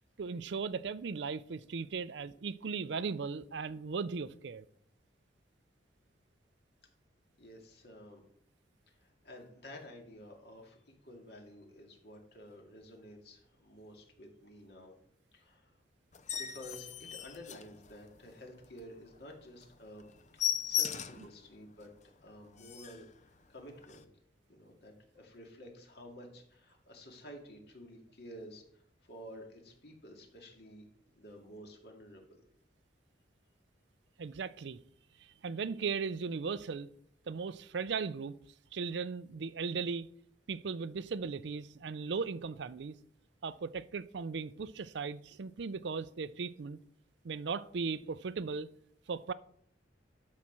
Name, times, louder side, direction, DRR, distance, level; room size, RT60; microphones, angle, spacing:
voice 1, 0.2-4.6 34.2-34.8 35.4-36.9 37.3-38.4 38.7-40.1 40.5-42.9 43.4-46.8 47.2-48.7 49.1-49.3, right 5 dB, 65° right, 0.5 m, -37 dB
voice 2, 7.4-8.2 8.9-10.8 11.0-15.0 15.3-15.7 16.3-20.1 20.3-21.9 22.2-24.1 24.5-28.8 29.1-30.8 31.1-32.2, equal, 55° left, 2.2 m, -51 dB
sound 1, 16.1-18.3 18.7-18.8 19.2-19.3 19.6-19.7 20.0-21.3 21.8-21.9 22.3-22.4 22.6-23.1 23.8-24.0, left 10 dB, 40° left, 0.5 m, -36 dB
12.0 x 4.2 x 6.1 m
head